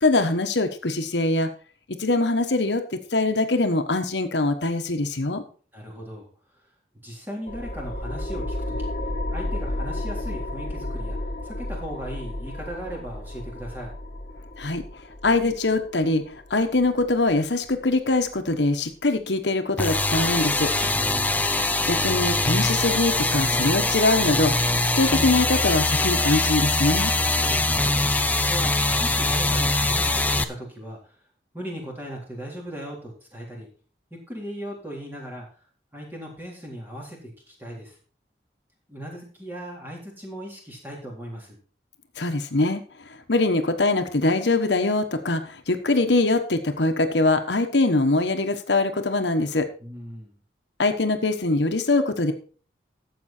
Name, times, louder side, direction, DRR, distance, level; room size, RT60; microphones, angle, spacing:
voice 1, 0.0-1.5 2.0-5.4 14.6-14.8 15.2-20.7 21.7-24.5 25.0-27.1 42.2-42.8 43.3-49.7 50.8-52.3, left 2 dB, 85° left, 7 dB, 1.2 m, -23 dB
voice 2, 5.7-6.3 7.0-8.9 9.3-11.2 11.4-13.9 20.8-21.4 27.4-28.0 28.5-28.7 29.0-31.1 31.5-33.7 34.1-35.5 35.9-37.9 38.9-41.6 49.8-50.3, equal, 10° right, -2 dB, 3.6 m, -37 dB
sound 1, 7.5-18.5, left 1 dB, 40° left, 1.6 m, -33 dB
sound 2, 19.8-30.4, left 2 dB, 10° left, 0.6 m, -23 dB
12.5 x 7.8 x 4.4 m, 0.41 s
head